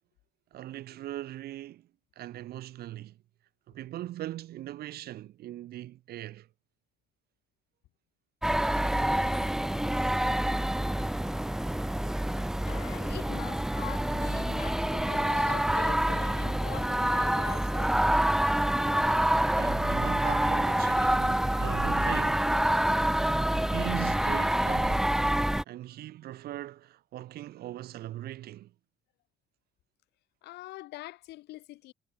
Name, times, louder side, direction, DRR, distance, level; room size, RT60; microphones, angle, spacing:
voice 1, 0.5-1.9 2.2-3.2 3.7-6.5 19.1-22.6 23.6-25.2 25.7-28.7, right 14 dB, 70° right, 1.8 m, -40 dB
sound 1, 8.4-25.6, right 1 dB, 5° right, 0.4 m, -27 dB
voice 2, 12.6-18.2 30.4-31.9, left 18 dB, 80° left, 1.9 m, -43 dB
cardioid pair, 110°, 17 cm